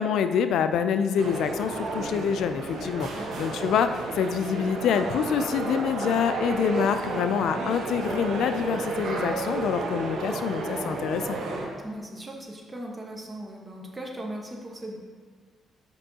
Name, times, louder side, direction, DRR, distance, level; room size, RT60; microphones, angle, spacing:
voice 1, 0.0-11.4, left 7 dB, 75° left, 10 dB, 0.3 m, -26 dB
sound 1, 1.2-11.7, right 3 dB, 75° right, 1.0 m, -32 dB
voice 2, 11.8-15.0, right 1 dB, 20° right, 0 dB, 1.2 m, -38 dB
7.8 x 5.3 x 2.8 m, 1.5 s
cardioid pair, 90°, 0 cm